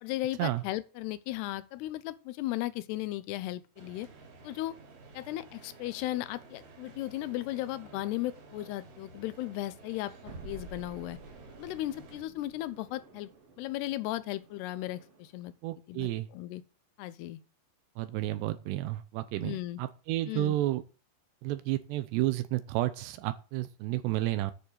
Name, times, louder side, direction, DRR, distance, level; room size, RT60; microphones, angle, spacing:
voice 1, 0.0-4.1 4.4-4.8 5.1-11.2 11.6-13.3 13.6-15.5 15.9-16.6 17.0-17.4 19.4-19.8 20.3-20.6, left 16 dB, 80° left, 2.7 m, -36 dB
sound 1, 3.8-12.2, right 3 dB, 65° right, 4.8 m, -53 dB
sound 2, 10.3-15.4, right 3 dB, 45° right, 2.3 m, -51 dB
voice 2, 15.6-16.3 18.0-20.8 21.4-24.5, right 15 dB, 85° right, 2.9 m, -31 dB
9.4 x 7.0 x 7.8 m
omnidirectional pair, 4.8 m